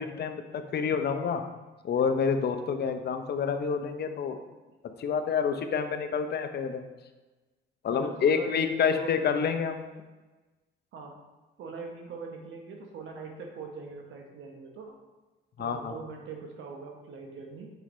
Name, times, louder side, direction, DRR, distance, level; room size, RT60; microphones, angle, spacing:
voice 1, 0.0-1.4 1.8-4.4 5.0-6.8 7.8-9.8 15.6-16.0, left 6 dB, 55° left, 7 dB, 0.7 m, -28 dB
voice 2, 7.9-9.3 10.9-11.1 11.6-14.9 15.6-17.7, right 4 dB, 75° right, 2 dB, 1.0 m, -42 dB
6.5 x 5.0 x 3.1 m, 1.2 s
cardioid pair, 90°, 20 cm